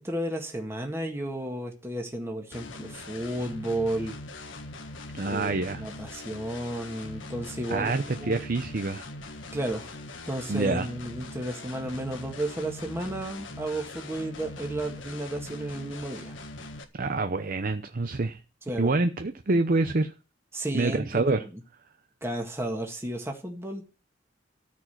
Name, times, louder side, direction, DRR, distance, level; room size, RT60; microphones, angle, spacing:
voice 1, 0.0-4.2 5.3-7.9 8.2-8.4 9.5-9.9 10.3-16.3 18.7-18.9 20.5-21.6 22.2-23.8, right 1 dB, 15° right, 2 dB, 1.8 m, -33 dB
sound 1, 2.5-16.8, left 2 dB, 85° left, 1.6 m, -42 dB
voice 2, 5.1-5.8 7.7-9.1 10.5-10.9 16.9-18.4 18.8-20.1 20.7-21.4, right 3 dB, 50° right, 9 dB, 0.7 m, -26 dB
14.0 x 5.0 x 9.2 m, 0.34 s
head